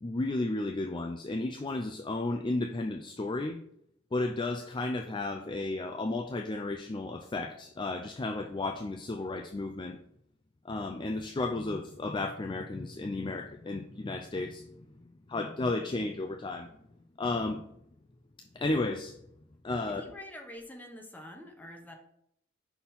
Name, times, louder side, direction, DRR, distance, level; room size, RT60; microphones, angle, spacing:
voice 1, 0.0-3.6 4.1-10.0 10.6-15.0 15.3-16.9 17.2-17.7 18.5-19.2 19.6-20.0, left 2 dB, 25° left, 4 dB, 0.4 m, -33 dB
voice 2, 19.9-21.9, left 1 dB, 10° left, 2 dB, 0.9 m, -46 dB
5.9 x 4.2 x 5.5 m, 0.72 s
head